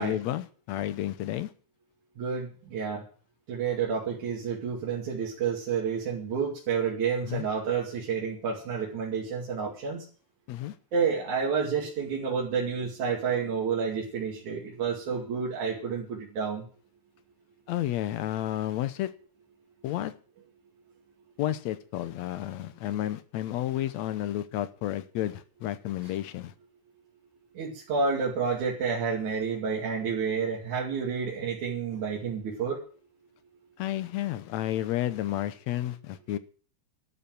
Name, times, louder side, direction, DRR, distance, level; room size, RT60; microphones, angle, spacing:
voice 1, 0.0-1.5 7.2-7.4 10.5-10.7 17.7-19.1 19.8-20.1 21.4-26.5 33.8-36.4, left 13 dB, 70° left, 1.9 m, -31 dB
voice 2, 2.2-3.0 3.5-10.0 10.9-16.7 27.6-32.8, right 6 dB, 70° right, 3.8 m, -30 dB
12.5 x 7.0 x 9.2 m
omnidirectional pair, 3.6 m